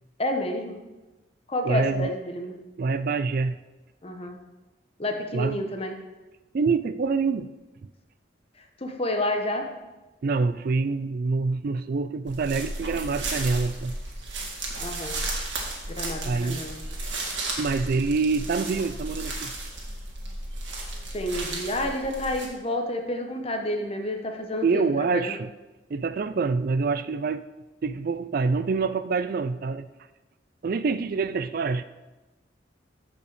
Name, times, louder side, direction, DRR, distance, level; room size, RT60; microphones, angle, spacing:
voice 1, 0.2-0.8 1.5-2.5 4.0-4.4 5.0-5.9 8.8-9.7 14.8-15.2 15.9-16.8 21.1-24.8 25.1-25.4, left 1 dB, 35° left, 4 dB, 1.1 m, -29 dB
voice 2, 1.6-2.1 2.8-3.6 5.3-5.6 6.5-7.5 10.2-14.0 16.2-16.6 17.6-19.5 24.6-25.5 25.9-27.4 27.8-29.9 30.6-31.8, right 4 dB, 50° right, 13 dB, 0.4 m, -26 dB
sound 1, 12.3-22.5, right 2 dB, 85° right, 2.1 m, -34 dB
13.5 x 5.3 x 5.0 m, 1.1 s
head